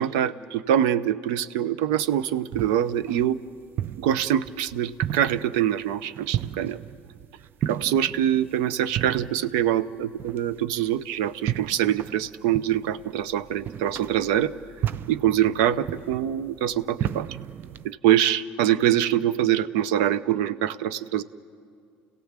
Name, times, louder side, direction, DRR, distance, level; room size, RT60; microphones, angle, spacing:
voice 1, 0.0-3.4 4.0-6.8 7.7-14.5 15.1-17.3 17.8-21.2, right 11 dB, 90° right, 16 dB, 0.7 m, -24 dB
sound 1, 2.0-17.9, right 11 dB, 50° right, 0.5 m, -35 dB
29.5 x 17.0 x 7.4 m, 2.4 s
supercardioid pair, 100°, 4 cm